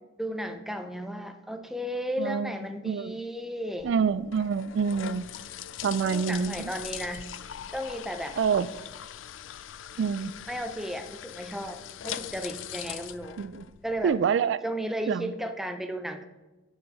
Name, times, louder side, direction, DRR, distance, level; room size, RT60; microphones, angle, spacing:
voice 1, 0.2-3.9 6.0-7.4 7.7-8.4 10.5-13.4 13.8-14.2 14.6-16.2, equal, ahead, 7 dB, 0.6 m, -34 dB
voice 2, 2.2-2.5 2.8-3.2 3.8-5.2 5.8-6.7 8.4-8.7 10.0-10.4 13.4-13.6 14.0-14.6 15.1-15.3, right 6 dB, 70° right, 16 dB, 0.3 m, -26 dB
sound 1, 3.8-14.2, left 10 dB, 85° left, 0.4 m, -41 dB
9.6 x 7.0 x 4.2 m, 1.1 s
head